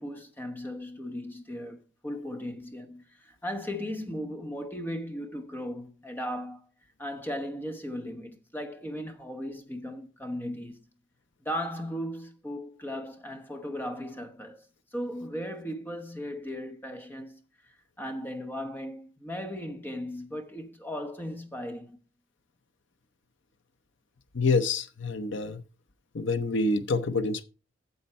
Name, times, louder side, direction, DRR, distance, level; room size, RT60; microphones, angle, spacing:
voice 1, 0.0-6.6 7.0-10.8 11.4-14.7 14.9-22.0, equal, 10° left, 0.9 m, -37 dB
voice 2, 24.3-25.6 26.1-27.4, left 3 dB, 65° left, 0.7 m, -27 dB
9.5 x 7.2 x 4.3 m
head